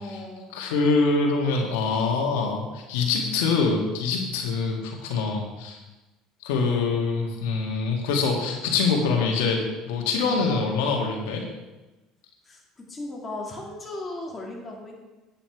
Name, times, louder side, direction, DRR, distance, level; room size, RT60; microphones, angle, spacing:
voice 1, 0.0-0.6 12.4-14.9, left 2 dB, 20° left, -2 dB, 2.9 m, -37 dB
voice 2, 0.5-5.8 6.4-11.4, left 4 dB, 90° left, 1 dB, 1.9 m, -24 dB
9.4 x 8.9 x 4.7 m, 1.1 s
supercardioid pair, 115°, 0 cm